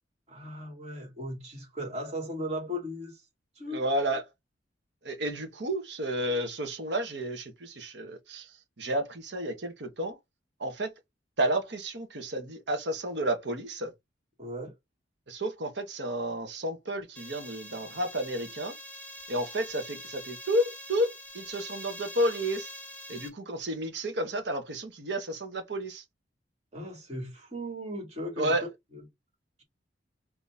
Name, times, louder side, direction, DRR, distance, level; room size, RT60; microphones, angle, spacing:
voice 1, 0.3-3.2 3.6-3.8 14.4-14.7 26.7-28.5 28.9-29.0, equal, 35° right, 2.4 m, -37 dB
voice 2, 3.7-4.2 5.0-10.2 10.6-10.9 11.4-13.9 15.3-18.7 19.3-22.7 23.1-26.0 28.4-28.6, right 1 dB, 65° right, 1.2 m, -31 dB
sound 1, 17.2-23.3, left 1 dB, 10° left, 1.7 m, -44 dB
4.1 x 3.0 x 3.5 m
head